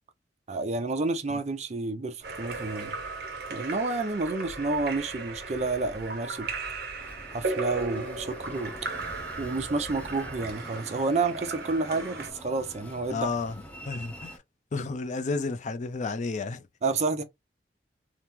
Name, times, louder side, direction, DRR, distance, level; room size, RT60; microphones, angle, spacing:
voice 1, 0.5-2.9 3.5-6.5 7.3-8.7 9.4-13.3 16.8-17.2, right 3 dB, 40° right, 0.5 m, -30 dB
sound 1, 2.2-10.6, equal, 20° right, 1.5 m, -49 dB
Splash splatter / Drip / Trickle dribble, 2.2-12.3, right 3 dB, 60° right, 0.9 m, -37 dB
Train, 7.0-14.4, equal, 10° left, 0.8 m, -46 dB
voice 2, 13.1-14.4 14.7-16.6, left 3 dB, 40° left, 0.4 m, -32 dB
2.9 x 2.0 x 3.5 m
head